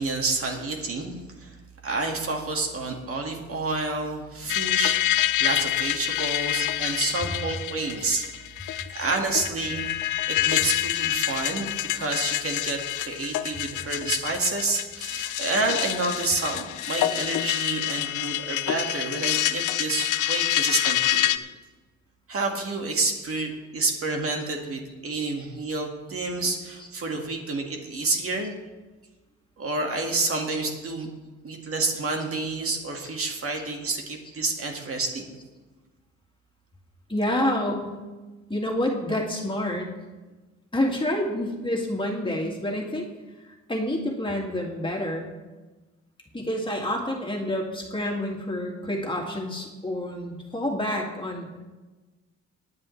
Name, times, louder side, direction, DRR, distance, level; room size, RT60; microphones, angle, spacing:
voice 1, 0.0-1.6 1.8-8.2 8.9-9.8 10.3-21.3 22.3-28.5 29.6-31.1 31.4-35.2, right 3 dB, 50° right, 2 dB, 2.0 m, -29 dB
sound 1, 4.5-21.4, left 13 dB, 80° left, 0.6 m, -27 dB
voice 2, 37.1-38.0 38.5-39.9 40.7-43.1 43.5-45.3 46.3-51.6, left 1 dB, 15° left, -1 dB, 2.2 m, -28 dB
18.5 x 9.6 x 3.3 m, 1.2 s
cardioid pair, 90°, 30 cm